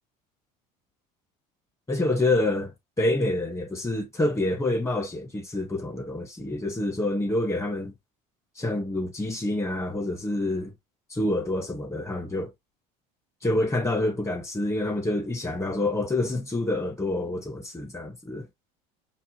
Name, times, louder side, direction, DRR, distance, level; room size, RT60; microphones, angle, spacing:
voice 1, 1.9-2.7 3.0-7.9 8.6-10.7 11.1-12.5 13.4-18.5, left 2 dB, 15° left, 1.7 m, -27 dB
5.2 x 2.5 x 3.1 m
cardioid pair, 130°, 17 cm